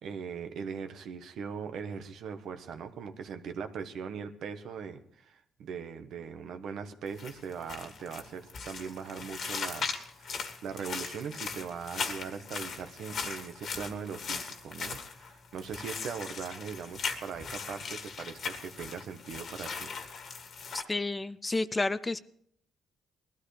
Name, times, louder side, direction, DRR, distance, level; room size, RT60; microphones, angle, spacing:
voice 1, 0.0-19.9, right 6 dB, 75° right, 8 dB, 1.2 m, -40 dB
sound 1, 7.1-20.8, left 5 dB, 60° left, 1.8 m, -39 dB
voice 2, 20.9-22.2, left 2 dB, 20° left, 15 dB, 0.5 m, -30 dB
20.0 x 13.0 x 3.3 m, 0.68 s
cardioid pair, 90°, 0 cm